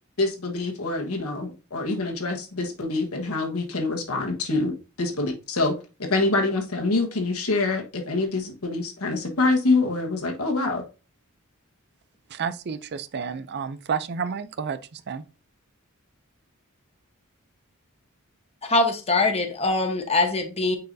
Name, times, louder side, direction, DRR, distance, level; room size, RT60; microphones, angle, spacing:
voice 1, 0.2-10.8, left 3 dB, 80° left, 1.4 m, -25 dB
voice 2, 12.3-15.3, right 6 dB, 50° right, 0.5 m, -31 dB
voice 3, 18.6-20.8, left 2 dB, 30° left, 1.0 m, -23 dB
9.3 x 4.7 x 2.7 m
head